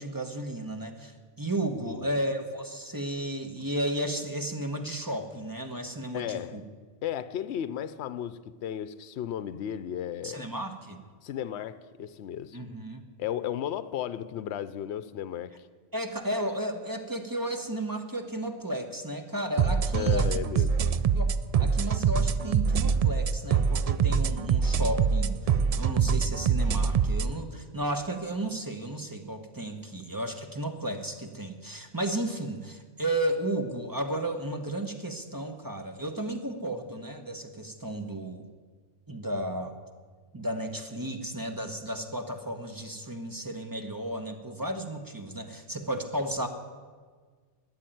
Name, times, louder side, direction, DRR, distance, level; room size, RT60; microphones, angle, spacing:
voice 1, 0.0-6.6 10.2-11.0 12.5-13.0 15.9-20.3 20.8-20.9 21.1-21.3 21.6-38.5 39.1-39.7 40.3-46.5, right 1 dB, 20° right, 1.2 m, -33 dB
voice 2, 6.1-6.6 7.0-10.5 11.2-12.6 13.2-15.7 19.9-20.8, left 10 dB, 70° left, 0.9 m, -34 dB
sound 1, 19.6-27.3, right 6 dB, 75° right, 0.3 m, -24 dB
13.0 x 9.0 x 9.2 m
omnidirectional pair, 1.2 m